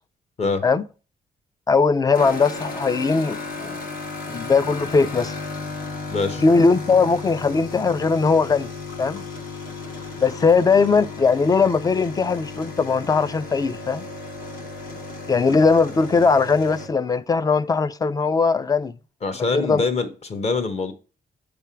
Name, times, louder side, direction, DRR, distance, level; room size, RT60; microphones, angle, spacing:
voice 1, 1.7-3.8 4.3-5.4 6.4-8.7 9.0-9.2 10.2-14.0 15.3-18.9 19.5-19.8, left 4 dB, 25° left, 0.3 m, -19 dB
sound 1, 2.1-16.9, left 3 dB, 65° left, 1.4 m, -34 dB
voice 2, 6.1-6.4 19.2-20.9, left 4 dB, 40° left, 1.0 m, -24 dB
7.4 x 3.5 x 5.6 m
wide cardioid pair, 155°, 16 cm